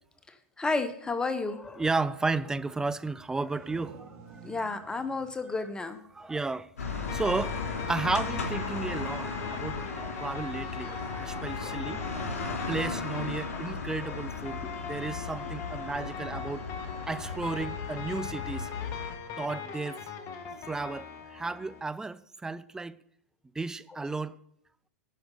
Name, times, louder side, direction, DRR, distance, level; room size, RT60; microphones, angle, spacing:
voice 1, 0.3-1.8 4.4-6.3 10.0-10.1 10.8-11.7 12.2-12.3 14.0-14.2 14.6-14.7 16.8-16.9 23.9-24.0, left 3 dB, 10° left, 1.0 m, -34 dB
voice 2, 1.8-4.4 6.1-6.7 7.1-7.6 7.9-12.1 12.5-16.6 17.1-18.7 19.4-20.0 20.7-23.0 23.6-24.4, right 3 dB, 5° right, 0.4 m, -33 dB
sound 1, 3.3-6.8, right 5 dB, 45° right, 2.2 m, -52 dB
sound 2, 6.8-19.1, left 4 dB, 85° left, 3.5 m, -36 dB
sound 3, 7.1-21.8, left 6 dB, 40° left, 1.6 m, -40 dB
10.5 x 5.1 x 8.3 m
hypercardioid pair, 120°, 8 cm